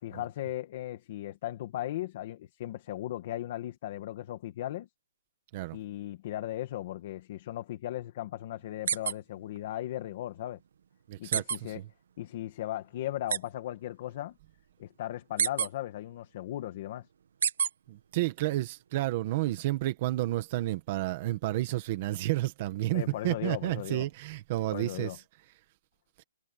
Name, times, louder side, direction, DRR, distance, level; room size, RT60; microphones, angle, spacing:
voice 1, 0.0-4.9 5.7-10.6 11.2-11.8 12.2-14.3 14.8-17.1 22.9-24.1 24.7-25.2, left 13 dB, 30° left, 2.0 m, -37 dB
sound 1, 8.9-9.1 9.6-9.7 11.3-11.6 13.3-13.4 15.4-15.7 17.4-17.7, right 8 dB, 60° right, 1.7 m, -26 dB
voice 2, 11.1-11.9 17.9-25.2 26.2-26.3, right 16 dB, 25° right, 1.4 m, -31 dB
hypercardioid pair, 180°, 0 cm